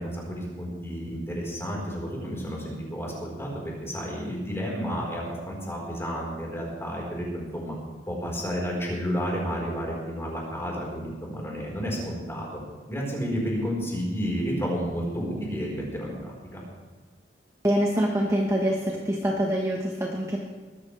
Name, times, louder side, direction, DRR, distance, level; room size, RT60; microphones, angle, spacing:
voice 1, 0.0-7.7 8.1-12.5 12.9-16.6, equal, 15° left, -3 dB, 4.6 m, -31 dB
voice 2, 17.6-20.4, equal, 15° right, -2 dB, 1.3 m, -25 dB
20.0 x 14.0 x 3.4 m, 1.4 s
head